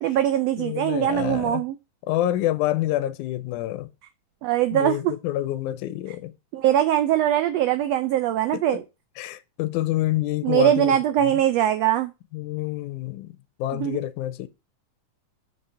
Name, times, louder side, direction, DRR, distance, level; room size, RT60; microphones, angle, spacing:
voice 1, 0.0-1.8 4.4-5.1 6.5-8.8 10.4-12.1 13.8-14.0, right 11 dB, 90° right, 1.4 m, -22 dB
voice 2, 0.6-1.6 2.1-3.9 4.7-6.3 8.5-8.8 9.2-11.0 12.3-13.3 13.6-14.5, left 14 dB, 80° left, 2.0 m, -27 dB
5.6 x 5.2 x 5.5 m
omnidirectional pair, 3.6 m